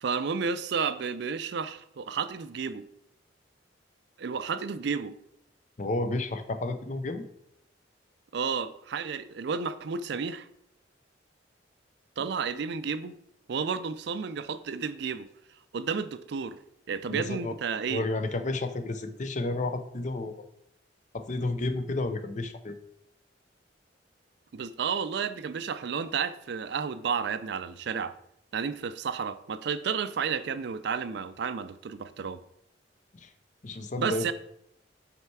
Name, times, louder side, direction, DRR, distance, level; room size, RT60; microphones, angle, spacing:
voice 1, 0.0-2.8 4.2-5.1 8.3-10.5 12.2-13.2 13.5-15.3 15.7-16.6 16.9-18.1 24.5-28.1 28.5-32.4 34.0-34.3, right 6 dB, 65° right, 13 dB, 0.4 m, -31 dB
voice 2, 5.8-7.3 17.1-17.6 17.9-20.3 21.1-22.8 33.2-33.3 33.6-34.3, left 2 dB, 40° left, 9 dB, 0.6 m, -31 dB
5.6 x 4.5 x 4.6 m, 0.74 s
head